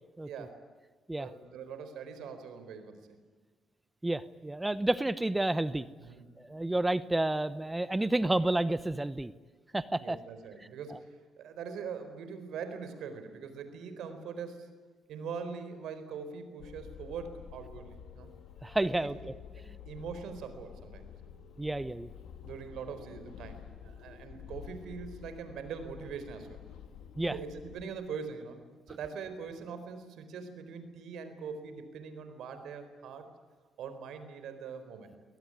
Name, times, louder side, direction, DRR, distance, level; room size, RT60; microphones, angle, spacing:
voice 1, 1.2-3.2 6.0-6.2 10.0-14.7 15.1-18.3 18.9-19.1 19.5-21.1 22.4-26.6 27.2-33.3 33.8-35.1, right 6 dB, 80° right, 9 dB, 4.2 m, -42 dB
voice 2, 4.0-5.9 6.4-9.3 9.7-10.2 10.9-11.0 18.6-19.2 21.6-22.1 27.2-27.4, right 1 dB, 10° right, 15 dB, 0.9 m, -30 dB
sound 1, 16.6-27.8, left 8 dB, 80° left, 2.3 m, -49 dB
24.5 x 18.5 x 9.9 m, 1.4 s
cardioid pair, 90°, 0 cm